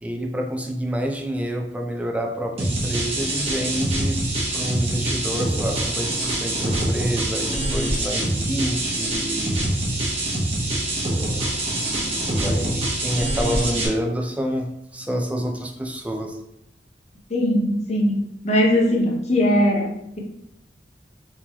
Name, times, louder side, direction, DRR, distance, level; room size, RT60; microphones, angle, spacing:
voice 1, 0.0-4.2 4.5-9.6 11.7-14.7 14.9-16.3, equal, 10° right, 1 dB, 0.4 m, -28 dB
sound 1, 2.6-13.9, right 1 dB, 35° right, 1.0 m, -25 dB
voice 2, 17.3-20.2, left 1 dB, 40° left, -1 dB, 0.8 m, -20 dB
3.7 x 3.0 x 2.9 m, 0.78 s
head